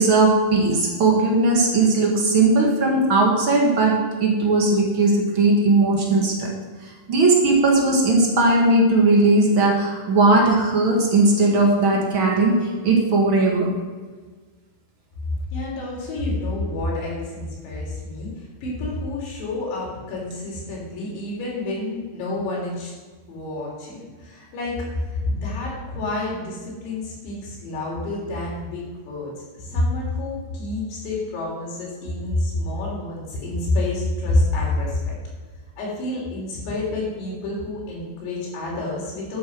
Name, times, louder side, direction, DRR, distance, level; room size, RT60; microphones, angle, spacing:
voice 1, 0.0-6.5 6.8-13.7, right 2 dB, 50° right, 0 dB, 1.6 m, -18 dB
voice 2, 15.5-22.9 23.3-35.1 35.8-39.4, left 2 dB, 85° left, -4 dB, 6.1 m, -28 dB
12.5 x 7.9 x 6.3 m, 1.4 s
omnidirectional pair, 4.9 m